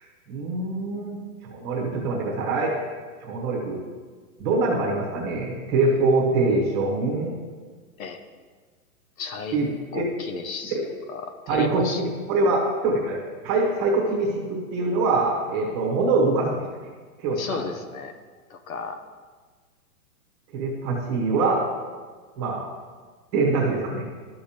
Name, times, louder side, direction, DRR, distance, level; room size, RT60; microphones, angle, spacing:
voice 1, 0.3-1.2 1.5-2.7 3.2-3.8 4.4-7.3 9.5-9.7 9.9-10.1 11.5-13.2 13.4-16.6 17.2-17.6 20.5-21.6 22.4-22.7 23.3-24.0, right 3 dB, 20° right, -2 dB, 1.1 m, -24 dB
voice 2, 9.2-9.6 9.9-10.8 11.1-12.0 17.4-18.1 18.5-19.0, left 5 dB, 65° left, 8 dB, 0.9 m, -33 dB
12.5 x 6.7 x 2.9 m, 1.5 s
hypercardioid pair, 175°, 45 cm